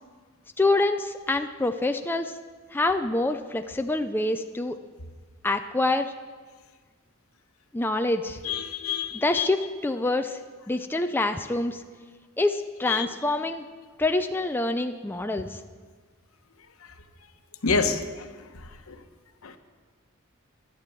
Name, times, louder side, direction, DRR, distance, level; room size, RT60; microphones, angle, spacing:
voice 1, 0.6-2.3 2.7-4.8 5.4-6.1 7.7-8.4 9.1-10.4 10.7-11.8 12.4-13.6 14.0-15.6, left 2 dB, 10° left, 6 dB, 0.4 m, -26 dB
voice 2, 8.4-9.5 12.9-13.1 17.6-18.0, left 5 dB, 75° left, 8 dB, 1.0 m, -26 dB
12.0 x 11.0 x 7.5 m, 1.5 s
head